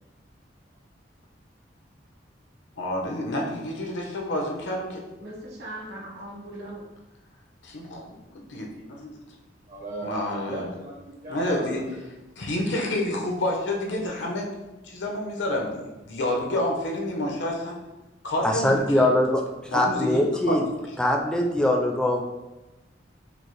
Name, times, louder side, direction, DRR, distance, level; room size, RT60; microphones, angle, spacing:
voice 1, 2.8-5.0 7.6-9.1 10.0-10.7 11.3-11.8 12.4-14.5 14.8-17.8 18.2-19.1 19.7-20.2 20.5-20.6, left 1 dB, 85° left, 0 dB, 0.8 m, -29 dB
voice 2, 5.2-6.9, right 1 dB, 65° right, -3 dB, 1.2 m, -39 dB
voice 3, 9.7-12.0, right 2 dB, 45° right, -3 dB, 0.6 m, -37 dB
voice 4, 18.4-20.6 21.0-22.2, left 1 dB, 5° left, 1 dB, 0.3 m, -22 dB
5.0 x 2.1 x 3.1 m, 1.0 s
head